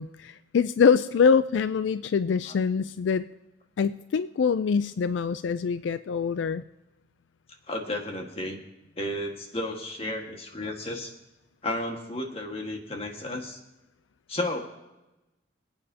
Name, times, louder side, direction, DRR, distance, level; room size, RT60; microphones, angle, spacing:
voice 1, 0.0-3.2 3.8-6.6, left 6 dB, 80° left, 14 dB, 0.4 m, -24 dB
voice 2, 7.7-8.6 9.0-11.1 11.6-13.6 14.3-14.6, left 1 dB, 30° left, 2 dB, 1.6 m, -33 dB
26.5 x 8.9 x 2.8 m, 1.0 s
head